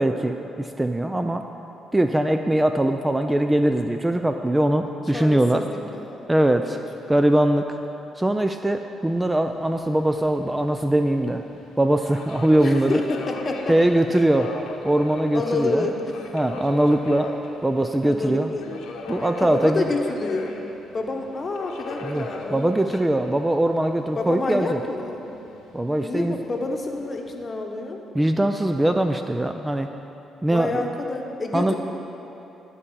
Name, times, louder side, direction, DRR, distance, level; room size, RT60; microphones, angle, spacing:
voice 1, 0.0-1.4 1.9-5.6 6.3-6.8 7.1-7.8 8.2-11.4 11.8-13.0 13.7-14.5 14.8-15.9 16.3-17.3 17.6-18.5 19.1-19.9 22.0-24.8 25.7-26.4 28.1-29.9 30.4-30.9 31.5-31.7, right 1 dB, 10° right, 6 dB, 0.3 m, -21 dB
voice 2, 5.1-6.2 6.7-6.8 12.6-14.0 15.3-16.1 18.0-18.9 19.4-20.6 20.9-22.7 24.1-25.3 26.0-28.0 30.5-31.7, left 2 dB, 35° left, 3 dB, 0.9 m, -28 dB
Subway metro underground, 9.1-27.5, left 3 dB, 85° left, 0.9 m, -40 dB
11.0 x 4.2 x 7.1 m, 3.0 s
cardioid pair, 90°, 0 cm